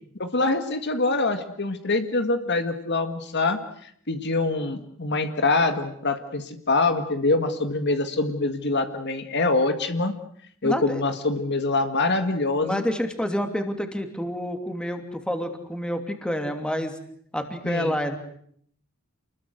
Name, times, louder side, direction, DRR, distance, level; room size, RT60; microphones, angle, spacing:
voice 1, 0.2-10.1 10.6-12.8 17.6-17.9, left 3 dB, 55° left, 8 dB, 1.9 m, -25 dB
voice 2, 10.6-11.0 12.6-17.0 17.3-18.2, equal, 5° left, 6 dB, 2.9 m, -28 dB
29.0 x 21.0 x 8.1 m, 0.64 s
head